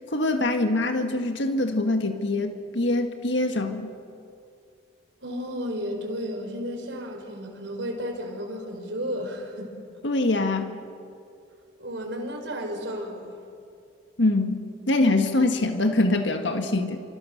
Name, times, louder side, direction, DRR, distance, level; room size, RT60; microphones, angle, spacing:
voice 1, 0.0-3.9 10.0-10.7 14.2-17.0, left 2 dB, 70° left, 6 dB, 1.7 m, -24 dB
voice 2, 5.2-9.7 11.8-13.3, equal, 70° right, 3 dB, 4.8 m, -33 dB
29.5 x 27.0 x 6.6 m, 2.5 s
head